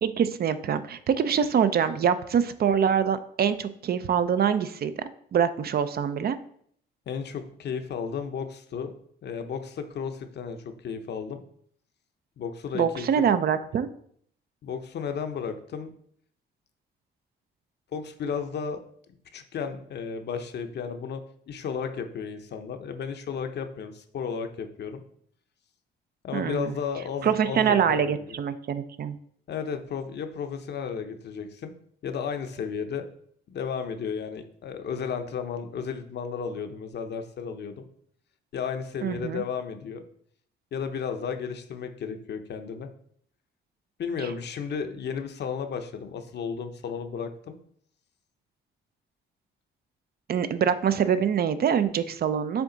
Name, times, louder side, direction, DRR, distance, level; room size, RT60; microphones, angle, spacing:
voice 1, 0.0-4.9 5.3-6.4 12.7-13.9 26.3-26.7 27.2-29.2 39.0-39.4 44.2-44.3 50.3-52.6, right 8 dB, 50° right, 12 dB, 0.5 m, -24 dB
voice 2, 7.1-8.9 9.2-11.4 12.4-13.3 14.6-15.9 17.9-18.8 19.3-25.0 26.2-28.4 29.5-31.7 32.0-33.0 33.5-37.9 38.5-40.0 40.7-42.9 44.0-47.6, left 6 dB, 60° left, 7 dB, 0.8 m, -33 dB
7.0 x 3.6 x 3.9 m, 0.64 s
cardioid pair, 90°, 20 cm